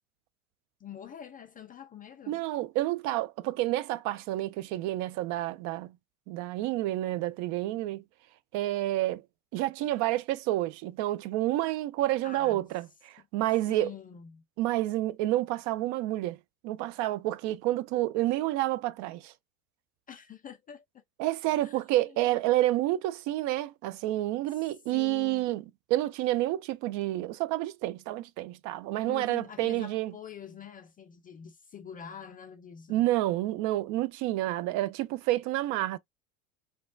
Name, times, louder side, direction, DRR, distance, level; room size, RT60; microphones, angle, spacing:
voice 1, 0.8-2.4 12.2-12.6 13.2-13.3 13.7-14.4 20.1-21.0 21.6-21.8 22.1-22.4 24.5-25.5 29.1-33.0, left 8 dB, 20° left, 0.4 m, -46 dB
voice 2, 2.3-5.9 6.3-8.0 8.5-9.2 9.5-13.9 14.6-16.4 16.6-19.3 21.2-25.6 25.9-30.1 32.9-36.0, right 16 dB, 45° right, 0.4 m, -29 dB
3.0 x 2.2 x 2.4 m
hypercardioid pair, 85°, 41 cm